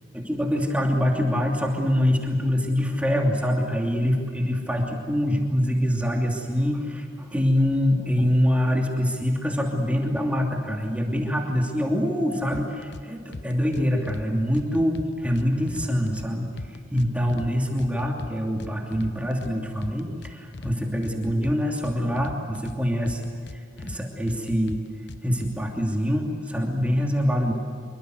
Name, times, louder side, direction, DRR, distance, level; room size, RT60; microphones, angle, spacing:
voice 1, 0.1-16.5 16.8-23.2 23.5-24.8 25.2-27.5, equal, 5° right, 0 dB, 2.8 m, -24 dB
sound 1, 12.5-13.0 13.3-14.3 14.5-16.3 16.6-17.5 17.8-19.5 19.8-20.7 21.0-22.8 23.1-24.0 24.3-25.5, left 2 dB, 60° left, 0.9 m, -38 dB
26.5 x 24.5 x 8.0 m, 2.2 s
head